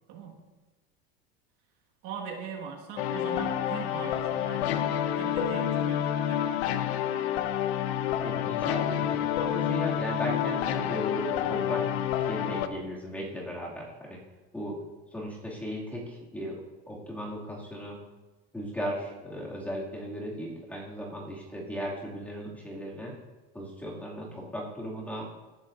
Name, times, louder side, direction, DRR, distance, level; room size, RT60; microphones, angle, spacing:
voice 1, 0.1-0.4 2.0-7.2, right 6 dB, 65° right, 0 dB, 1.8 m, -41 dB
sound 1, 3.0-12.7, left 10 dB, 85° left, 0.8 m, -28 dB
voice 2, 8.2-14.2 14.5-14.8 15.1-16.6 16.9-18.0 18.5-23.2 23.5-25.3, equal, 5° left, -4 dB, 2.3 m, -36 dB
17.0 x 9.0 x 2.6 m, 1.2 s
supercardioid pair, 145°, 31 cm